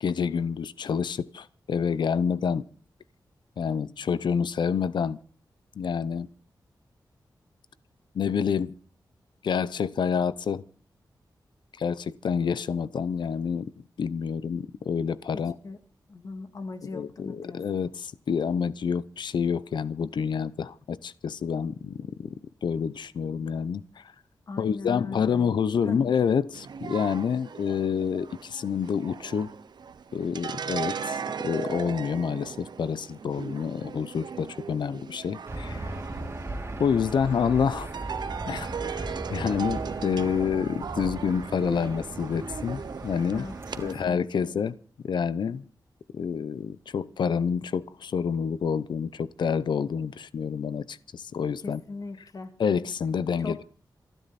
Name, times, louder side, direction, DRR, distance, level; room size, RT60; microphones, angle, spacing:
voice 1, 0.0-2.6 3.6-5.2 5.8-6.3 8.1-8.8 9.4-10.6 11.8-13.7 14.0-15.5 16.9-22.3 22.6-24.1 24.6-29.5 30.1-35.9 36.8-37.9 38.5-43.5 43.8-44.7 45.0-45.7 46.1-51.8 52.6-53.6, left 6 dB, 85° left, 0.8 m, -28 dB
voice 2, 15.3-15.8 16.1-17.6 24.5-25.5 25.8-26.0 43.3-44.5 51.6-52.5 53.4-53.6, left 3 dB, 50° left, 2.2 m, -40 dB
sound 1, 26.5-43.9, right 6 dB, 70° right, 0.9 m, -38 dB
Aircraft / Engine, 35.5-44.0, right 2 dB, 35° right, 2.7 m, -38 dB
27.5 x 10.5 x 4.3 m
wide cardioid pair, 145°, 8 cm